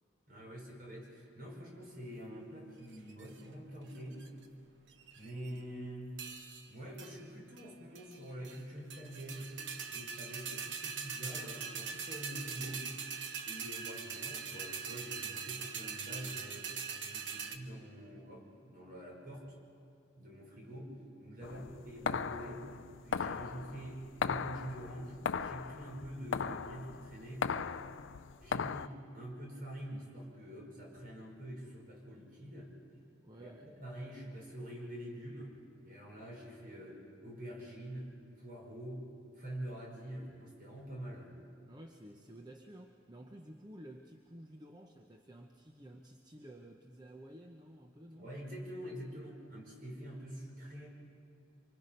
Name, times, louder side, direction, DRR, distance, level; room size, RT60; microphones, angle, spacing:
voice 1, 0.3-4.2 5.2-6.2 6.7-9.6 9.9-12.9 13.4-16.7 17.0-19.5 20.2-22.7 23.0-27.7 28.4-32.7 33.3-35.6 35.8-39.1 39.4-41.3 48.1-50.9, right 1 dB, 45° right, -2 dB, 5.4 m, -46 dB
sound 1, 2.9-3.4 3.9-4.4 4.9-5.6 6.2-6.7 7.0-7.1 7.6-7.7 7.9-8.6 8.9-17.6, right 6 dB, 70° right, 1.2 m, -42 dB
sound 2, 21.4-28.9, left 6 dB, 75° left, 0.5 m, -38 dB
voice 2, 21.4-21.7 33.2-33.7 41.7-48.3, right 1 dB, 20° right, 2 dB, 0.8 m, -53 dB
25.5 x 24.5 x 5.3 m, 2.7 s
head